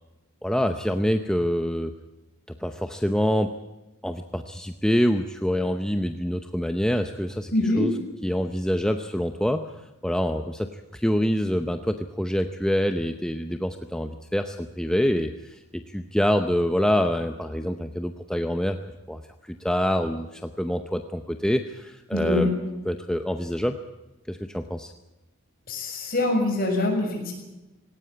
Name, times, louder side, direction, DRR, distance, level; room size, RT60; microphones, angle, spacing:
voice 1, 0.4-1.9 2.6-3.5 4.0-7.9 8.2-9.7 10.0-18.8 19.1-22.5 22.8-23.8 24.3-24.9, equal, 5° left, 6 dB, 0.7 m, -26 dB
voice 2, 7.5-7.9 22.1-22.5 25.7-27.3, left 2 dB, 45° left, 2 dB, 6.5 m, -24 dB
18.5 x 18.0 x 8.7 m, 1.0 s
head